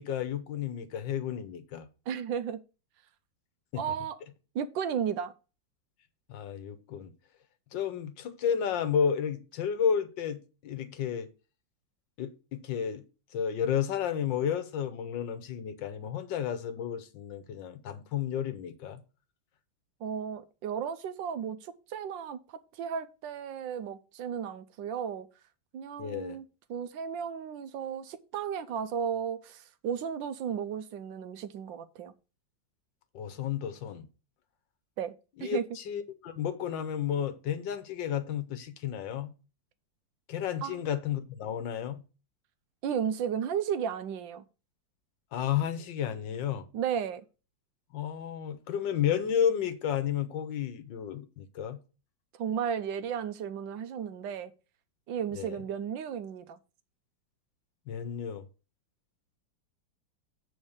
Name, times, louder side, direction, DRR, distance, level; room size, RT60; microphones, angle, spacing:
voice 1, 0.0-1.9 3.7-3.8 6.3-7.1 7.7-11.3 12.2-13.0 13.3-19.0 26.0-26.4 33.1-34.1 35.4-39.3 40.3-42.0 45.3-46.7 47.9-51.8 55.3-55.6 57.9-58.5, left 8 dB, 75° left, 1.6 m, -32 dB
voice 2, 2.1-2.6 3.8-4.2 4.5-5.3 20.0-25.3 25.7-26.4 26.7-32.1 35.0-35.1 35.4-35.6 40.6-40.8 42.8-44.4 46.7-47.2 52.4-54.5 55.1-56.6, right 8 dB, 85° right, 1.5 m, -34 dB
7.2 x 4.2 x 6.4 m
omnidirectional pair, 2.0 m